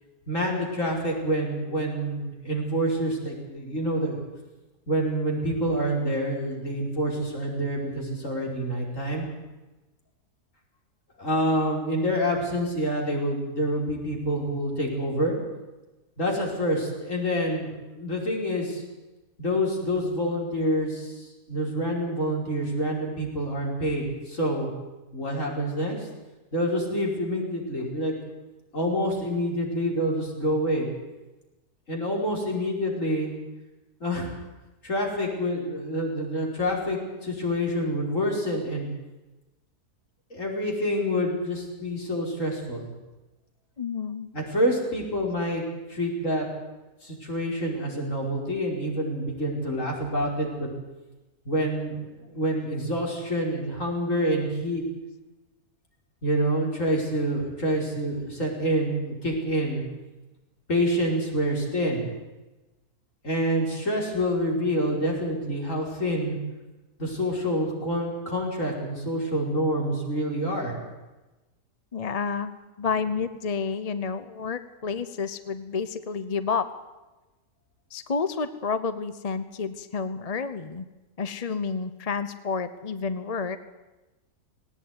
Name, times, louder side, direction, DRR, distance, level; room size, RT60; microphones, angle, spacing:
voice 1, 0.3-4.2 4.9-9.3 11.2-15.3 16.2-18.8 19.4-24.7 25.1-26.1 26.5-28.1 28.7-30.9 31.9-33.3 34.0-34.3 34.8-38.9 40.3-42.9 44.3-45.6 45.9-46.5 47.0-50.7 51.5-54.8 56.2-59.8 60.7-62.1 63.2-66.4 67.0-70.8, equal, 55° left, -1 dB, 5.5 m, -27 dB
voice 2, 43.8-44.3 71.9-72.5 72.8-76.7 77.9-80.9 81.2-83.6, left 5 dB, 35° left, 12 dB, 0.7 m, -30 dB
19.0 x 18.5 x 9.5 m, 1.1 s
omnidirectional pair, 1.7 m